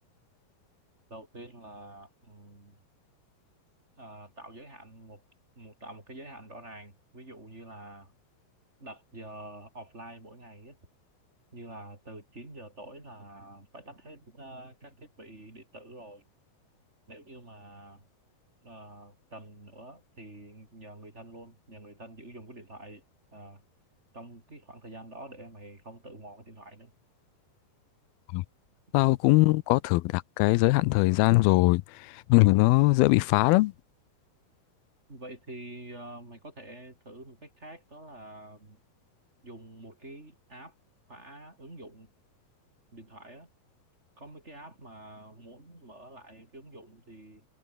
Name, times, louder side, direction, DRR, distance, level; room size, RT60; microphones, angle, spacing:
voice 1, 1.1-2.8 4.0-5.2 5.6-8.1 8.8-10.8 11.5-16.2 17.1-18.1 18.6-23.0 23.3-23.6 24.1-26.9 35.1-38.8 39.4-40.7 41.1-42.1 42.9-43.5 44.2-47.5, right 1 dB, 20° right, 4.2 m, -47 dB
voice 2, 28.9-33.7, left 21 dB, 85° left, 2.5 m, -21 dB
omnidirectional pair, 4.3 m